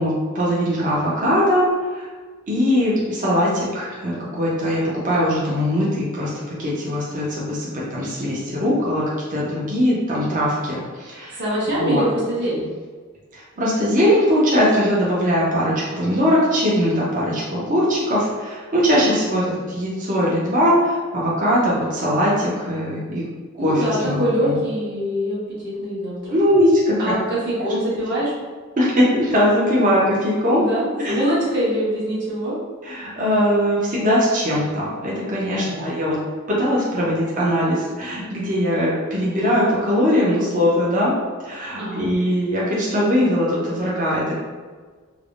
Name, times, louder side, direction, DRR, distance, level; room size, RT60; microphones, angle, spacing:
voice 1, 0.0-1.6 1.9-2.1 2.5-11.4 11.7-12.0 13.3-23.2 23.6-24.6 26.3-27.0 27.6-27.7 28.8-30.6 31.0-31.2 32.8-36.2 36.5-41.1 41.4-44.3, equal, 40° right, -6 dB, 0.6 m, -20 dB
voice 2, 11.4-12.7 18.9-19.2 23.6-26.3 27.0-28.3 30.5-32.5 35.5-35.9 41.8-42.1, equal, 60° right, -9 dB, 1.2 m, -24 dB
3.2 x 2.0 x 2.4 m, 1.5 s
head